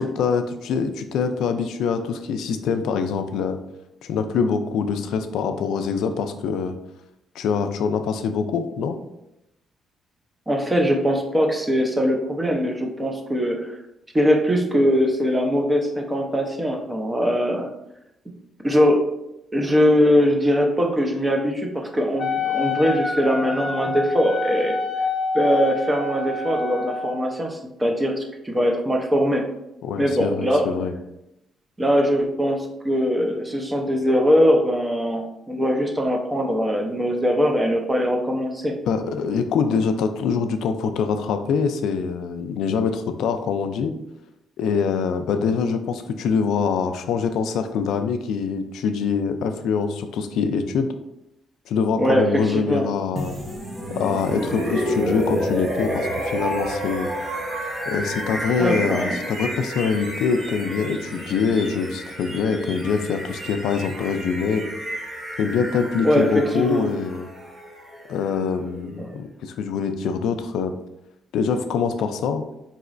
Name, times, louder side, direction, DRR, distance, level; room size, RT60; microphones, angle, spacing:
voice 1, 0.0-3.6 4.0-6.8 7.4-9.0 29.8-30.9 38.9-44.0 44.6-50.9 51.7-53.4 53.9-57.1 57.9-64.7 65.4-67.3 68.1-70.7 71.3-72.4, left 5 dB, 80° left, 8 dB, 0.3 m, -24 dB
voice 2, 10.5-13.7 14.1-17.7 18.6-19.0 19.5-24.8 25.3-29.4 30.0-30.7 31.8-38.7 52.0-52.8 58.6-59.2 66.0-66.8 69.0-69.2, equal, 15° right, 2 dB, 0.6 m, -21 dB
Wind instrument woodwind instrument, 22.2-27.2, left 3 dB, 35° left, 0.5 m, -27 dB
sound 1, 53.2-69.0, equal, 40° right, 1.0 m, -30 dB
4.0 x 2.9 x 2.5 m, 0.86 s
cardioid pair, 90°, 0 cm